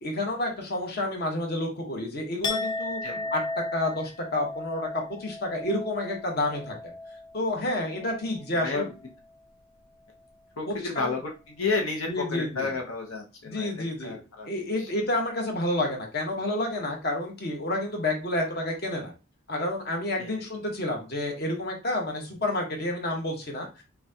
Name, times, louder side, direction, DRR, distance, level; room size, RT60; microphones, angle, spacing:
voice 1, 0.0-3.4 3.7-4.9 5.2-6.9 7.3-8.9 11.0-11.1 12.1-12.7 13.5-14.2 14.4-19.1 19.5-23.8, left 1 dB, 50° left, 1 dB, 1.1 m, -29 dB
Chink clink, 2.4-8.4 8.7-9.1, left 2 dB, 20° left, 0.4 m, -35 dB
voice 2, 3.0-3.3 8.5-8.9 10.6-14.9 20.2-20.5, left 3 dB, 85° left, 2 dB, 0.9 m, -32 dB
5.8 x 2.3 x 2.8 m, 0.31 s
head